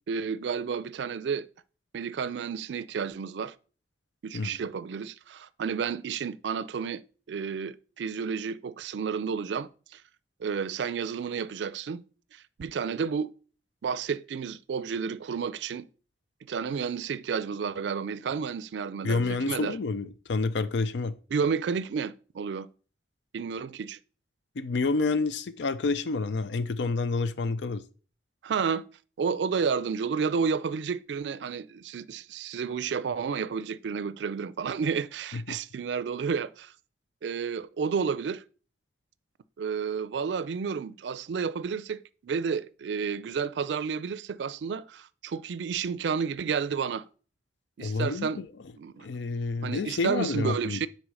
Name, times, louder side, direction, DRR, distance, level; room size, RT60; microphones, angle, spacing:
voice 1, 0.1-1.5 1.9-3.5 4.2-7.0 7.3-10.0 10.4-12.0 12.3-13.3 13.8-15.9 16.5-19.8 21.3-22.7 23.3-24.0 28.4-28.8 29.2-36.7 37.2-38.4 39.6-47.1 47.8-48.4 48.8-49.1 49.6-50.9, right 6 dB, 85° right, 0.4 m, -31 dB
voice 2, 19.0-21.1 24.6-27.8 35.5-35.6 47.8-48.5 49.0-50.8, left 3 dB, 85° left, 0.5 m, -29 dB
6.3 x 4.3 x 6.1 m
head